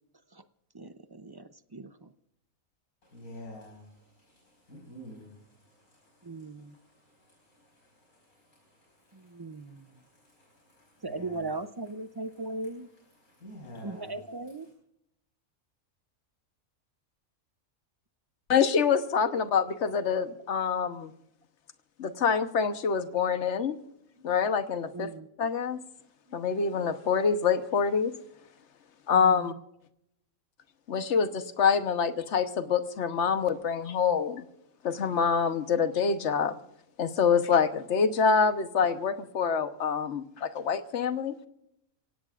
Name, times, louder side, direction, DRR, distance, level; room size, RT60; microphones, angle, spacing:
voice 1, 0.7-2.1 6.2-6.7 9.1-9.8 11.0-12.9 13.8-14.7 24.9-25.3 29.1-29.6, right 2 dB, 30° right, 10 dB, 0.4 m, -38 dB
voice 2, 3.1-3.8 4.7-5.3 11.1-11.4 13.4-14.1, equal, 90° left, -2 dB, 5.5 m, -45 dB
voice 3, 18.5-21.1 22.0-23.8 24.2-25.1 25.4-25.8 26.3-28.1 29.1-29.5 30.9-34.4 34.8-36.6 37.0-41.3, left 6 dB, 55° left, 10 dB, 1.3 m, -26 dB
27.0 x 17.0 x 2.5 m, 0.78 s
omnidirectional pair, 1.5 m